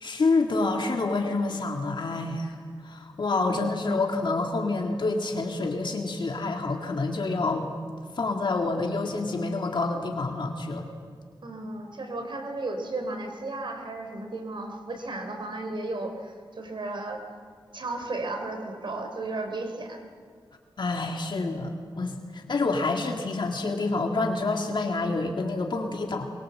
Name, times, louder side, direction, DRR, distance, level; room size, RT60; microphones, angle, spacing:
voice 1, 0.0-2.6 2.8-7.7 8.1-10.8 20.8-26.3, left 3 dB, 60° left, 2 dB, 2.0 m, -27 dB
voice 2, 11.4-17.3 17.7-20.0, right 2 dB, 65° right, 5 dB, 3.4 m, -34 dB
23.0 x 22.0 x 7.7 m, 2.1 s
wide cardioid pair, 80°, 9 cm